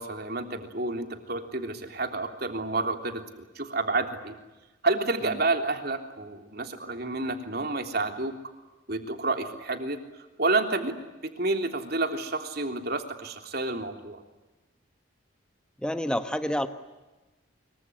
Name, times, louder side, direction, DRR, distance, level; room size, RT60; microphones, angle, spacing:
voice 1, 0.0-3.2 3.5-4.3 4.8-8.3 8.9-10.0 10.4-10.9 11.2-14.2, right 3 dB, 50° right, 5 dB, 3.3 m, -29 dB
voice 2, 15.8-16.7, equal, 5° left, 9 dB, 1.1 m, -28 dB
25.5 x 23.5 x 9.9 m, 1.1 s
head